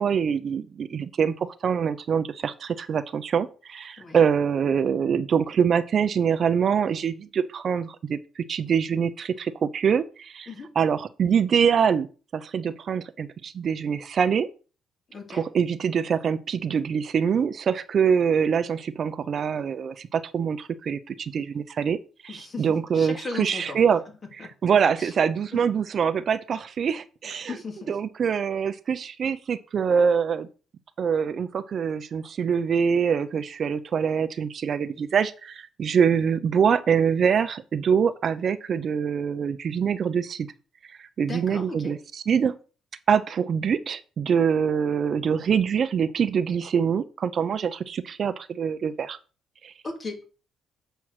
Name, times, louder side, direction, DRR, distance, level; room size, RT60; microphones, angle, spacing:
voice 1, 0.0-0.6 1.2-1.3 1.6-2.5 2.9-3.5 4.1-7.1 7.6-7.8 8.5-9.1 9.8-10.0 10.8-12.0 12.5-13.0 13.6-14.5 15.5-19.9 20.3-20.6 20.9-21.0 21.3-21.4 21.8-22.0 22.6-24.0 24.6-27.0 27.2-27.5 27.9-30.4 31.0-31.5 31.7-35.3 35.8-40.2 41.2-42.0 42.3-42.5 43.1-43.2 43.5-47.0 47.4-47.6 48.2-48.3 48.6-48.9, right 7 dB, 55° right, 0.6 m, -23 dB
voice 2, 15.1-15.5 22.3-22.7 22.9-23.8 24.4-24.5 25.0-25.1 25.5-25.6 27.5-28.0 41.3-42.0 49.8-50.3, left 3 dB, 40° left, 2.4 m, -36 dB
7.2 x 4.6 x 6.5 m
cardioid pair, 90°, 0 cm